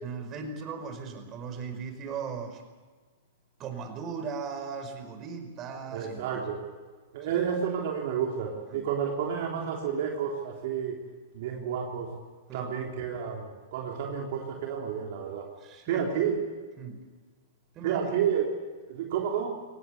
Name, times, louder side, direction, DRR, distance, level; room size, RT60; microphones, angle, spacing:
voice 1, 0.0-2.6 3.6-6.4 7.3-7.4 8.7-8.9 12.5-12.8 15.6-16.3 16.8-17.0 17.8-18.1, right 5 dB, 35° right, 6 dB, 5.2 m, -38 dB
voice 2, 5.9-6.7 7.1-11.0 11.3-12.2 12.5-15.5 15.9-16.4 17.8-18.6 18.9-19.6, right 8 dB, 60° right, 0 dB, 3.6 m, -30 dB
23.5 x 18.5 x 8.3 m, 1.4 s
hypercardioid pair, 115°, 0 cm